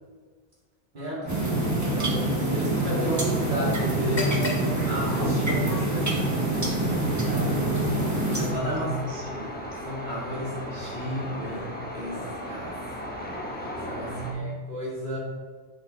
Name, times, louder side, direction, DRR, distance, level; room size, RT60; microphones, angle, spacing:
voice 1, 0.9-1.5 7.2-7.9 8.8-9.2 14.0-14.7, right 3 dB, 50° right, -2 dB, 1.0 m, -35 dB
sound 1, 1.2-14.3, equal, 10° left, 1.0 m, -36 dB
sound 2, 1.3-8.5, right 2 dB, 15° right, 1.0 m, -26 dB
voice 2, 1.5-4.3 4.9-6.1 8.3-9.0 9.2-9.5 9.8-12.2 12.4-12.8 13.8-15.2, equal, 75° right, -7 dB, 2.7 m, -33 dB
sound 3, 4.0-11.8, equal, 65° left, 2.4 m, -42 dB
7.9 x 4.5 x 3.9 m, 1.5 s
omnidirectional pair, 1.1 m